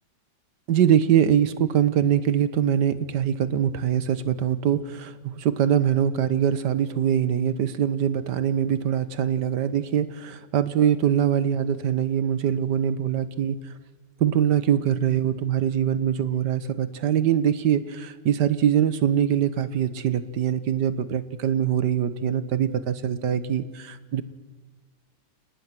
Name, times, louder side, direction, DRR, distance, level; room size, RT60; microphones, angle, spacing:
voice 1, 0.7-13.6 14.2-24.2, right 9 dB, 75° right, 14 dB, 1.6 m, -23 dB
29.5 x 18.5 x 6.1 m, 1.5 s
omnidirectional pair, 1.9 m